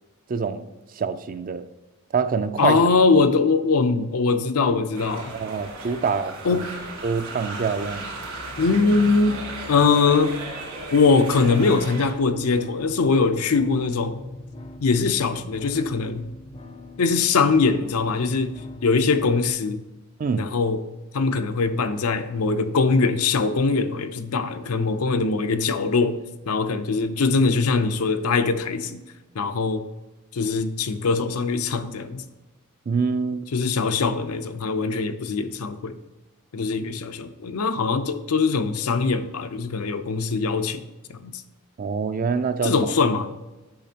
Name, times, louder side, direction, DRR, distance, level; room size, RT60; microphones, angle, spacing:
voice 1, 0.3-0.7 0.9-1.7 2.1-2.8 5.3-6.7 7.0-8.1 20.2-20.4 32.9-33.5 41.8-42.7, right 5 dB, 40° right, 0.4 m, -25 dB
voice 2, 2.6-5.4 6.4-6.7 8.6-9.4 9.7-10.4 10.9-14.2 14.8-16.3 17.0-18.5 18.8-19.8 20.4-20.8 21.1-26.2 26.5-29.0 29.3-29.8 30.3-32.2 33.5-36.0 36.5-40.8 41.1-41.3 42.6-43.3, left 4 dB, 90° left, 0.6 m, -22 dB
sound 1, 4.9-12.1, right 2 dB, 65° right, 2.1 m, -35 dB
sound 2, 11.5-19.5, left 2 dB, 25° left, 0.5 m, -41 dB
8.6 x 5.8 x 2.8 m
head